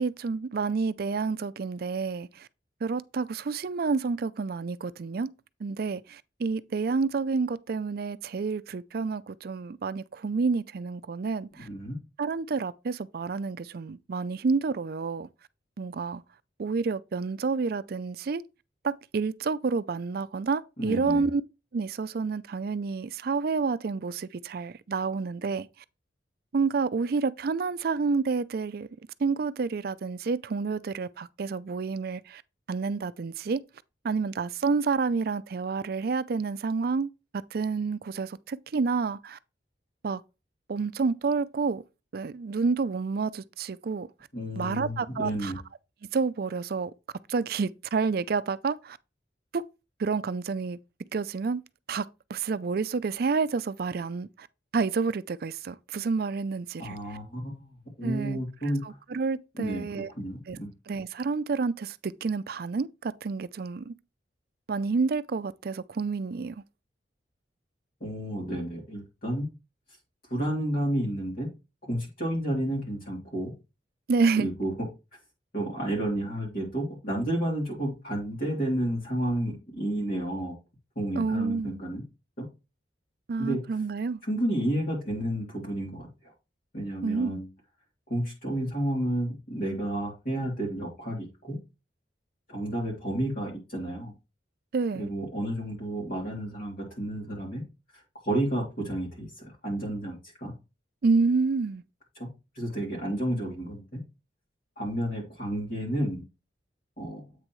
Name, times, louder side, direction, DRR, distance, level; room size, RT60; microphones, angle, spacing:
voice 1, 0.0-2.5 2.8-5.3 5.6-11.7 12.2-15.3 15.8-16.2 16.6-18.4 18.8-21.4 21.7-25.7 26.5-28.9 29.2-32.4 32.7-33.6 34.0-39.4 40.0-40.2 40.7-41.8 42.1-44.1 44.6-45.5 46.1-46.9 47.3-49.0 49.5-49.6 50.0-50.8 51.1-51.6 51.9-54.5 54.7-57.0 58.0-58.4 58.8-60.1 60.5-60.6 60.9-63.9 64.7-66.6 74.1-74.5 81.1-81.8 83.3-84.2 87.0-87.4 94.7-95.1 101.0-101.8, right 4 dB, 55° right, 0.4 m, -29 dB
voice 2, 11.6-12.0 20.8-21.2 44.3-45.6 56.8-59.0 59.5-60.7 68.0-69.5 70.3-71.5 71.9-73.5 74.4-74.7 75.5-80.5 80.9-82.0 82.4-82.5 83.4-83.6 84.2-86.3 86.7-87.5 88.1-91.6 92.5-94.1 94.9-97.6 97.9-100.5 102.1-102.3 102.5-104.0 104.8-106.2 107.0-107.2, right 1 dB, 50° left, 3.0 m, -31 dB
8.3 x 6.2 x 3.1 m
head